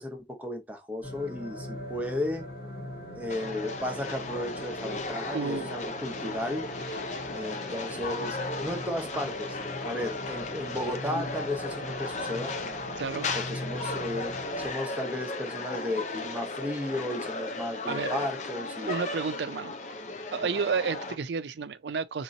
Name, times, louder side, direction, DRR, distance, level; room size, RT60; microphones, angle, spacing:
voice 1, 0.0-2.5 3.1-6.7 7.3-12.6 13.3-18.9, left 1 dB, 10° right, 0.8 m, -34 dB
sound 1, 1.0-14.7, equal, 60° left, 1.7 m, -41 dB
sound 2, 3.3-21.1, left 3 dB, 40° left, 0.5 m, -36 dB
voice 2, 5.3-5.7 13.0-13.4 17.9-18.1 18.9-19.7 20.3-22.2, right 5 dB, 75° right, 0.4 m, -31 dB
sound 3, 6.4-13.1, left 1 dB, 80° left, 2.3 m, -54 dB
3.7 x 2.9 x 3.8 m
head